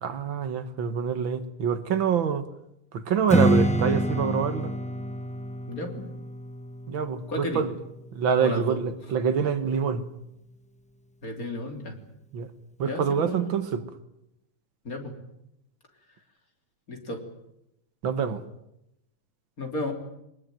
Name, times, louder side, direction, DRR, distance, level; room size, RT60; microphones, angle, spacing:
voice 1, 0.0-2.5 2.9-4.7 6.9-7.7 8.1-10.0 12.3-12.5 12.8-13.8 18.0-18.4, right 7 dB, 65° right, 2.0 m, -26 dB
Strum, 3.3-8.5, equal, 10° left, 0.4 m, -28 dB
voice 2, 5.7-6.1 7.3-7.6 8.4-8.8 11.2-12.0 12.8-13.5 14.9-15.2 16.9-17.2 19.6-19.9, left 1 dB, 40° left, 3.7 m, -33 dB
22.5 x 20.5 x 9.2 m
omnidirectional pair, 2.4 m